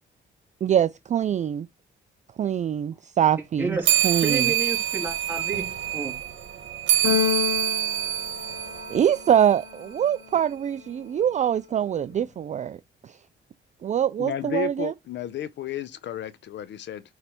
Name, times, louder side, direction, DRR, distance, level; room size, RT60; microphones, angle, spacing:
voice 1, 0.6-1.7 2.4-3.8 4.0-4.5 8.9-12.8 13.0-13.2 13.8-14.9, right 9 dB, 35° right, 0.4 m, -24 dB
voice 2, 3.6-6.2, right 3 dB, 10° right, 3.0 m, -31 dB
sound 1, 3.8-9.7, right 12 dB, 70° right, 1.3 m, -26 dB
Keyboard (musical), 7.0-9.1, left 12 dB, 85° left, 1.0 m, -28 dB
voice 3, 14.2-17.0, left 9 dB, 65° left, 0.6 m, -33 dB
9.3 x 3.3 x 4.3 m
cardioid pair, 90°, 20 cm